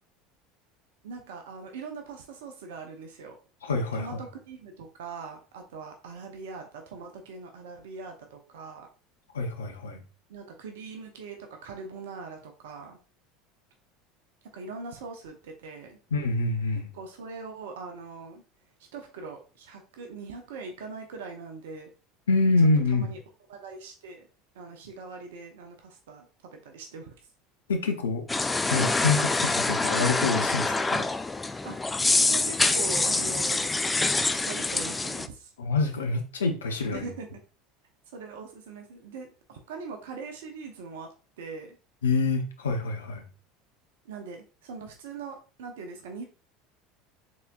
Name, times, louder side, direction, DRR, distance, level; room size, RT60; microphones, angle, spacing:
voice 1, 1.0-3.4 3.9-8.9 10.3-13.0 14.4-16.0 16.9-18.4 18.9-21.9 22.6-22.7 22.9-23.2 23.5-24.3 24.5-27.2 31.6-33.7 34.2-35.5 36.9-37.4 38.1-41.8 44.0-46.3, right 4 dB, 70° right, 3 dB, 0.8 m, -41 dB
voice 2, 3.6-4.2 9.3-10.0 16.1-16.9 22.3-23.1 27.7-28.2 28.6-31.1 35.6-37.1 42.0-43.2, left 3 dB, 75° left, 4 dB, 0.7 m, -26 dB
sound 1, 28.3-35.3, left 3 dB, 15° left, 0.3 m, -26 dB
4.1 x 4.0 x 2.4 m, 0.34 s
figure-of-eight pair, 70°, 0 cm